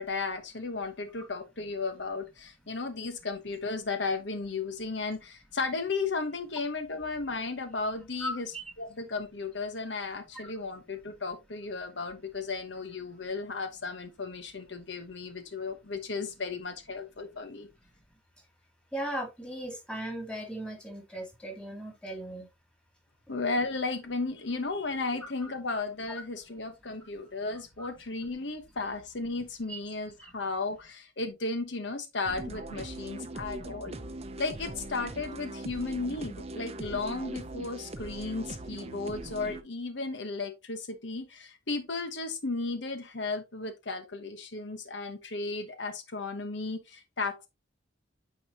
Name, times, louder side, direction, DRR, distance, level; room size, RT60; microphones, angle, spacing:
voice 1, 0.0-17.7 23.3-34.0 34.4-47.5, left 3 dB, 75° left, 1.1 m, -34 dB
voice 2, 8.2-8.6 18.9-22.5 27.8-27.9, right 1 dB, 5° left, 2.5 m, -37 dB
sound 1, 32.3-39.6, right 2 dB, 35° right, 0.6 m, -41 dB
9.3 x 4.7 x 2.8 m
head